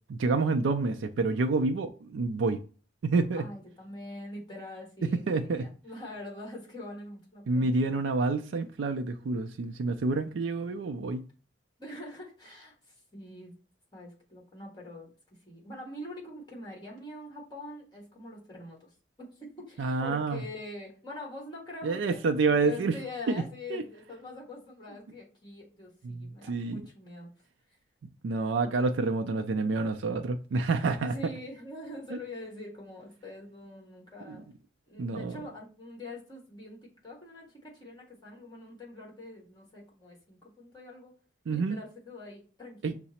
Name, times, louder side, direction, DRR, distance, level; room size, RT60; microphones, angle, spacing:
voice 1, 0.1-2.6 3.0-3.5 5.0-5.7 7.5-11.2 19.8-20.4 21.8-23.0 23.3-23.4 23.7-23.8 26.0-26.8 28.2-31.1 32.1-32.2 34.3-34.4 35.0-35.3 41.5-41.8 42.8-43.0, right 3 dB, 85° right, 0.4 m, -28 dB
voice 2, 3.3-7.7 11.8-13.5 13.9-18.9 19.2-22.2 22.6-27.3 31.0-34.5 34.9-41.1 41.5-43.0, left 2 dB, 25° left, 1.4 m, -44 dB
5.6 x 2.0 x 4.1 m
head